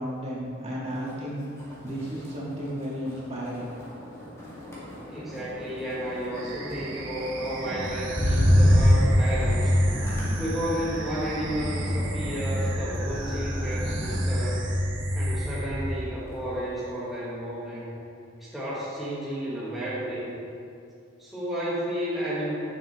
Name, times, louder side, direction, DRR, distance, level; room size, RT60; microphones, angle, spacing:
voice 1, 0.0-1.4 1.8-3.7, equal, 35° right, -6 dB, 1.7 m, -33 dB
Motor vehicle (road), 0.9-1.3 1.6-16.0 16.4-16.9, equal, 15° left, 2.0 m, -26 dB
voice 2, 5.1-9.8 10.4-14.7 15.1-17.9 18.4-20.4 21.2-22.6, right 1 dB, ahead, -9 dB, 1.0 m, -32 dB
sound 1, 6.3-16.0, right 4 dB, 65° right, 1.0 m, -40 dB
8.9 x 6.8 x 3.1 m, 2.5 s
head